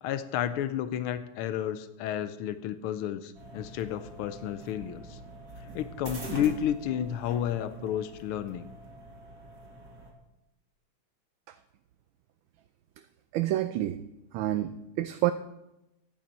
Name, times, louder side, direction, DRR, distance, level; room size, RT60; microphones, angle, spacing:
voice 1, 0.0-5.2 5.6-8.7, left 10 dB, 90° left, 11 dB, 1.5 m, -31 dB
sound 1, 3.3-10.1, right 2 dB, 50° right, 2.3 m, -44 dB
voice 2, 13.3-14.0 14.3-15.3, right 14 dB, 75° right, 10 dB, 1.3 m, -28 dB
15.0 x 9.4 x 4.2 m, 0.92 s
omnidirectional pair, 2.3 m